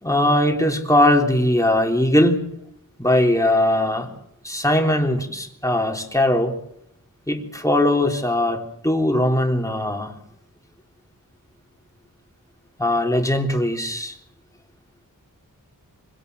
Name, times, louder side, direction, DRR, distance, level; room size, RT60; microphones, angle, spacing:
voice 1, 0.0-2.5 3.0-4.1 4.4-6.6 7.3-10.1 12.8-14.2, left 1 dB, 10° left, 2 dB, 3.5 m, -20 dB
25.0 x 17.5 x 8.2 m, 0.75 s
wide cardioid pair, 65°, 35 cm